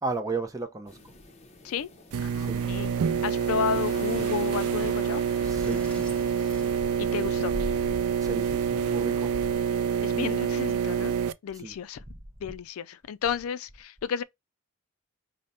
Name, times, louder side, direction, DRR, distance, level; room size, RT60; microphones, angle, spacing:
voice 1, 0.0-1.0 2.5-2.6 5.4-5.8 8.2-9.3 11.5-11.7, right 3 dB, 15° right, 0.6 m, -33 dB
sound 1, 0.9-9.2, left 1 dB, 30° left, 0.7 m, -43 dB
sound 2, 2.1-11.3, right 7 dB, 90° right, 0.4 m, -27 dB
voice 2, 2.2-2.9 3.2-5.2 7.0-7.5 10.0-11.2 11.4-12.0 12.4-14.2, left 7 dB, 85° left, 0.3 m, -32 dB
Sliding door, 5.3-7.6, equal, 5° left, 1.0 m, -43 dB
5.0 x 2.1 x 4.1 m
head